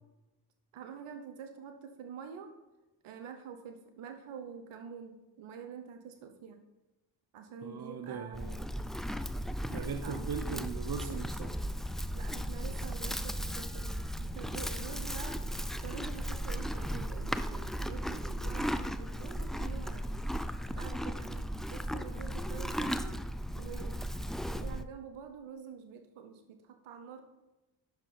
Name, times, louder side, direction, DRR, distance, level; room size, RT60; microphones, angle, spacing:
voice 1, 0.7-2.5 3.0-6.6 7.3-8.6 10.0-10.3 12.1-15.5 15.7-20.2 20.7-23.2 23.6-27.2, right 6 dB, 80° right, 6 dB, 1.0 m, -47 dB
voice 2, 7.6-8.5 9.7-11.6, right 6 dB, 50° right, 8 dB, 0.9 m, -39 dB
Livestock farm animals working animals, 8.3-24.9, equal, ahead, 0.5 m, -36 dB
8.2 x 6.3 x 5.9 m, 1.0 s
supercardioid pair, 45°, 49 cm